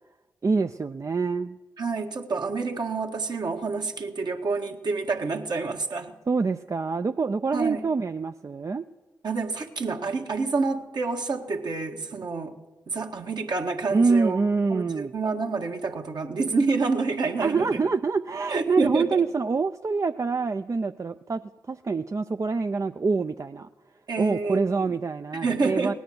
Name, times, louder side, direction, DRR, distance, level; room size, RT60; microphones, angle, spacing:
voice 1, 0.4-1.6 6.3-8.8 13.9-15.1 17.4-21.4 21.7-23.7 24.2-25.9, right 4 dB, 40° right, 8 dB, 0.5 m, -25 dB
voice 2, 1.8-6.1 7.5-7.8 9.2-12.6 12.9-14.4 14.7-17.8 18.5-19.2 24.1-24.9 25.4-25.9, right 4 dB, 60° right, 3 dB, 1.7 m, -28 dB
18.0 x 9.2 x 7.9 m, 1.2 s
supercardioid pair, 40°, 8 cm